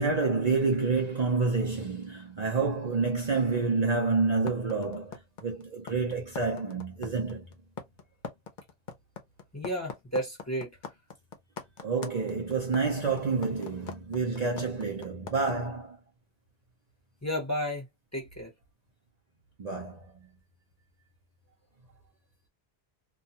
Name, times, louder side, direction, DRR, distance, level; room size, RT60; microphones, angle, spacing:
voice 1, 0.0-7.5 11.8-16.0 19.6-20.1, right 4 dB, 45° right, 0.7 m, -28 dB
sound 1, 4.5-15.5, left 5 dB, 55° left, 0.7 m, -41 dB
voice 2, 9.5-10.7 17.2-17.9 18.1-18.5, equal, 15° left, 0.9 m, -32 dB
2.4 x 2.2 x 2.8 m
omnidirectional pair, 1.0 m